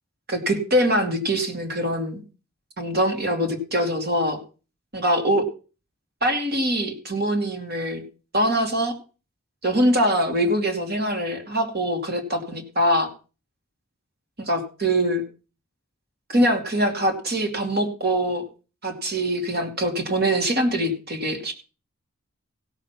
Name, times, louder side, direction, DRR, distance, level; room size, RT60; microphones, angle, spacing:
voice 1, 0.3-2.2 2.8-4.4 4.9-5.4 6.2-8.0 8.3-8.9 9.6-13.1 14.4-15.2 16.3-18.4 18.8-21.5, right 1 dB, 50° right, 4 dB, 2.5 m, -23 dB
16.5 x 5.9 x 5.9 m, 0.35 s
head